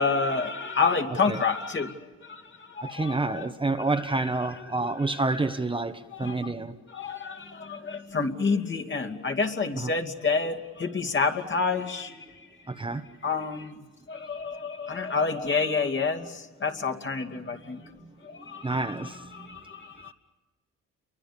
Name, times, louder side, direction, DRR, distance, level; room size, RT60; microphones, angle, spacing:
voice 1, 0.0-3.5 3.8-4.2 6.1-6.5 6.9-12.5 13.2-13.8 14.1-17.8 18.2-19.0 19.3-20.1, left 4 dB, 40° left, 2.6 m, -29 dB
voice 2, 2.8-6.8 9.8-9.9 12.7-13.1 18.6-19.5, right 3 dB, 15° right, 1.1 m, -29 dB
30.0 x 23.5 x 7.1 m
cardioid pair, 90°, 30 cm